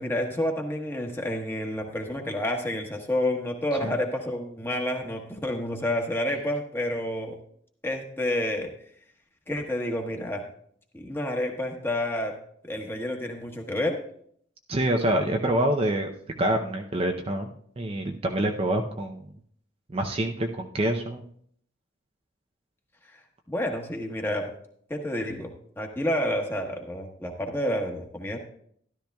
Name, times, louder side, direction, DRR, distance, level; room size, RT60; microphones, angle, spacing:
voice 1, 0.0-7.3 7.8-8.7 9.5-10.4 10.9-12.3 12.6-14.0 23.1-23.2 23.5-24.5 24.9-25.5 25.8-28.4, left 1 dB, 10° left, 1 dB, 1.3 m, -29 dB
voice 2, 14.7-16.1 16.4-19.2 19.9-21.2, right 1 dB, 30° right, 3 dB, 0.6 m, -26 dB
13.0 x 12.0 x 2.3 m, 0.64 s
head